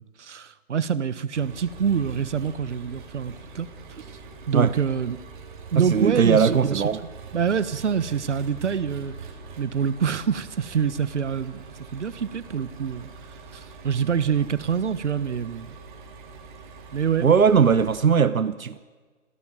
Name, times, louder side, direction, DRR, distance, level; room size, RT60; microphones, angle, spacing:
voice 1, 0.0-3.7 4.0-4.1 4.5-5.2 5.7-6.9 7.3-9.1 9.6-13.1 13.5-15.7 16.9-17.3, right 7 dB, 55° right, 1.3 m, -26 dB
Engine, 1.3-18.0, right 4 dB, 35° right, 3.6 m, -43 dB
voice 2, 5.8-7.0 17.2-18.8, right 6 dB, 75° right, 1.1 m, -19 dB
28.5 x 18.0 x 7.5 m
figure-of-eight pair, 150°, 42 cm